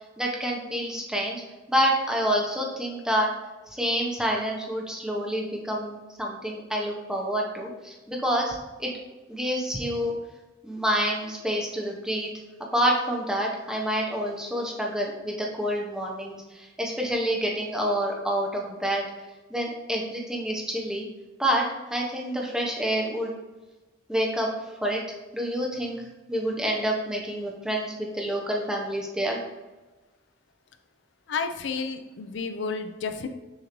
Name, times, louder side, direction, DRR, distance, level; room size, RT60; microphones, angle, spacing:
voice 1, 0.2-1.4 1.7-3.3 3.7-8.9 9.3-10.1 10.6-12.3 12.7-19.0 19.5-21.1 21.4-21.6 21.9-23.3 24.1-24.5 24.8-25.0 25.3-26.0 26.3-29.4, equal, 5° right, -2 dB, 0.7 m, -28 dB
voice 2, 31.3-33.3, left 5 dB, 65° left, 8 dB, 0.4 m, -31 dB
6.5 x 2.6 x 3.0 m, 1.2 s
head